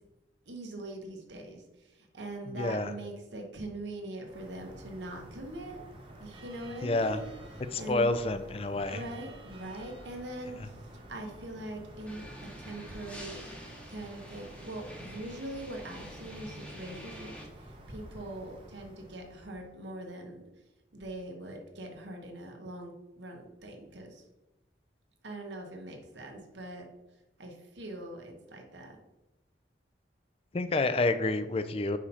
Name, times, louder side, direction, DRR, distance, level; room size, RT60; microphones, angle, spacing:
voice 1, 0.5-5.8 6.2-7.2 7.7-8.1 8.9-13.4 13.9-20.4 20.9-24.3 25.2-26.9 27.4-29.0, right 1 dB, 85° right, 2 dB, 1.2 m, -42 dB
voice 2, 2.5-2.9 6.8-7.2 7.7-9.0 10.6-10.7 30.5-32.0, left 2 dB, 30° left, 10 dB, 0.4 m, -29 dB
sound 1, 4.2-19.7, right 1 dB, 30° right, 0.9 m, -50 dB
sound 2, 12.0-17.5, equal, 5° left, 0.9 m, -47 dB
4.9 x 4.3 x 5.5 m, 1.0 s
head